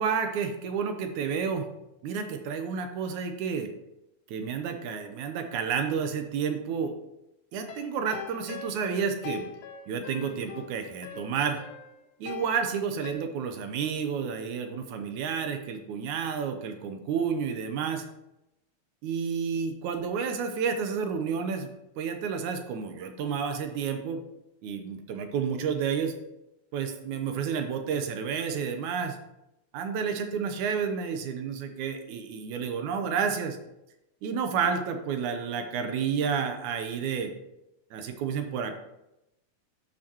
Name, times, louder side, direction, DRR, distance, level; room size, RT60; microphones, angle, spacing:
voice 1, 0.0-1.7 2.0-3.7 4.3-6.9 7.5-9.4 9.9-11.6 12.2-18.1 19.0-21.7 22.0-24.2 24.6-26.1 26.7-29.2 29.7-33.6 34.2-37.3 37.9-38.7, right 6 dB, 85° right, 6 dB, 2.3 m, -30 dB
sound 1, 7.5-13.1, left 7 dB, 90° left, 2.3 m, -43 dB
12.5 x 6.2 x 3.0 m, 0.88 s
omnidirectional pair, 3.4 m